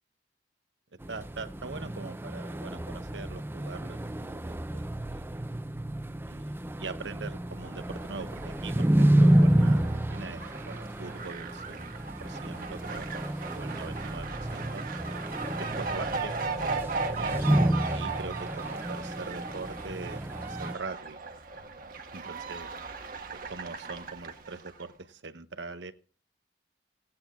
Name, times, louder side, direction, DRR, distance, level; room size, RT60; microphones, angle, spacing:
sound 1, 1.0-20.7, right 1 dB, 10° right, 0.5 m, -29 dB
voice 1, 1.1-5.5 6.2-13.1 13.5-14.9 15.6-17.4 17.9-21.2 22.1-22.7 23.3-25.9, right 4 dB, 85° right, 11 dB, 0.9 m, -42 dB
Fowl, 7.5-24.8, right 4 dB, 50° right, 1.3 m, -38 dB
16.5 x 9.7 x 3.6 m, 0.43 s
head